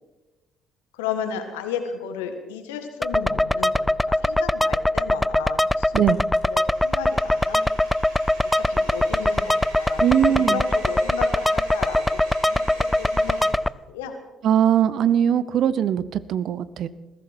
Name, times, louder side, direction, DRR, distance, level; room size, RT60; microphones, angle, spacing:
voice 1, 0.9-6.2 6.4-7.6 8.5-10.0 10.3-13.6 13.9-14.1, left 7 dB, 75° left, 7 dB, 1.8 m, -34 dB
sound 1, 3.0-13.7, left 1 dB, 5° left, 0.4 m, -22 dB
Domestic sounds home sounds, 6.1-13.5, right 2 dB, 80° right, 3.5 m, -42 dB
voice 2, 10.0-10.6 14.4-16.9, right 10 dB, 55° right, 17 dB, 0.7 m, -20 dB
21.0 x 15.0 x 4.5 m, 1.1 s
figure-of-eight pair, 50°, 0 cm